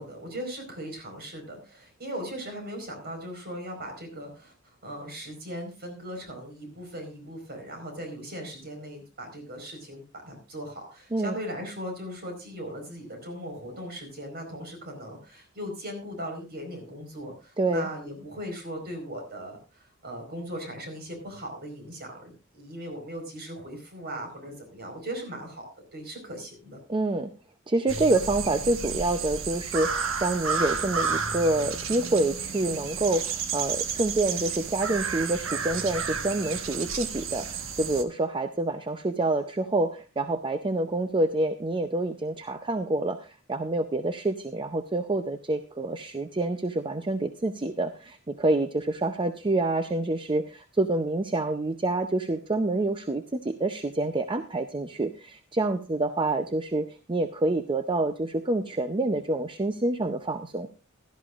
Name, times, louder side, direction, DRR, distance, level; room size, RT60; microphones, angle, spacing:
voice 1, 0.0-25.7 25.9-26.8, equal, 50° right, 4 dB, 4.7 m, -38 dB
voice 2, 17.6-17.9 26.9-27.3 27.7-60.7, right 2 dB, 25° right, 9 dB, 0.6 m, -27 dB
sound 1, 27.9-38.0, right 5 dB, 65° right, 1.3 m, -31 dB
16.0 x 12.5 x 2.4 m, 0.30 s
head